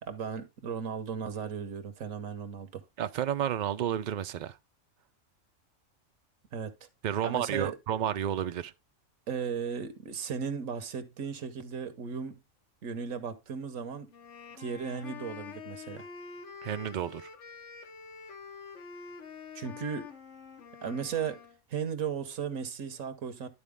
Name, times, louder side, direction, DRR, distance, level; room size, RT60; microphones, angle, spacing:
voice 1, 0.0-2.8 6.5-6.7 7.2-7.7 9.3-12.4 12.8-14.1 14.6-16.1 19.5-20.1 20.8-21.4 21.7-23.5, right 6 dB, 85° right, 1.4 m, -36 dB
voice 2, 3.0-4.6 7.0-8.7 16.6-17.3, right 10 dB, 65° right, 0.4 m, -31 dB
sound 1, 14.1-21.6, left 6 dB, 65° left, 1.3 m, -46 dB
11.5 x 4.2 x 3.5 m
omnidirectional pair, 1.3 m